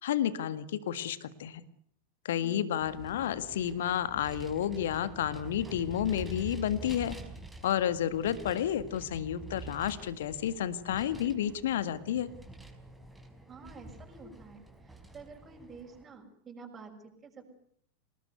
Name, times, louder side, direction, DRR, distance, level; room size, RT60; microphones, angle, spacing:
voice 1, 0.0-1.6 2.3-7.2 7.6-12.3, left 10 dB, 60° left, 14 dB, 1.7 m, -31 dB
Vehicle, 2.8-16.0, right 1 dB, 5° right, 4.7 m, -47 dB
voice 2, 13.5-17.5, right 4 dB, 20° right, 1 dB, 6.7 m, -49 dB
27.0 x 20.0 x 9.5 m, 0.66 s
figure-of-eight pair, 90°, 0 cm